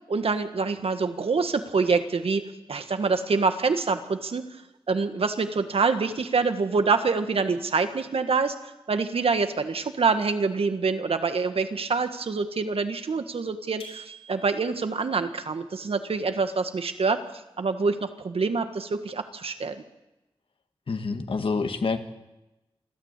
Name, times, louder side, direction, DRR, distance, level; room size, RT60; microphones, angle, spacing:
voice 1, 0.1-4.4 4.9-8.6 8.9-17.2 17.6-19.8, right 4 dB, 75° right, 8 dB, 1.7 m, -26 dB
sound 1, 13.8-14.9, right 3 dB, 85° left, 5.6 m, -46 dB
voice 2, 20.9-22.0, left 4 dB, 65° left, 7 dB, 1.8 m, -27 dB
27.0 x 12.5 x 8.3 m, 0.98 s
wide cardioid pair, 115°, 10 cm